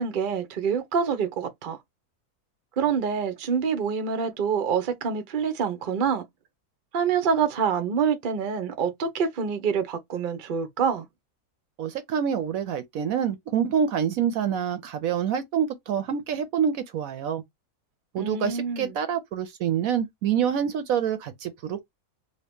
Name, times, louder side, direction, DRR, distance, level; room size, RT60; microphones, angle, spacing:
voice 1, 0.0-1.8 2.8-6.2 6.9-11.1 18.2-19.0, right 6 dB, 50° right, 0.6 m, -26 dB
voice 2, 11.8-17.4 18.1-21.8, right 8 dB, 70° right, 1.0 m, -26 dB
2.8 x 2.7 x 3.4 m
omnidirectional pair, 1.7 m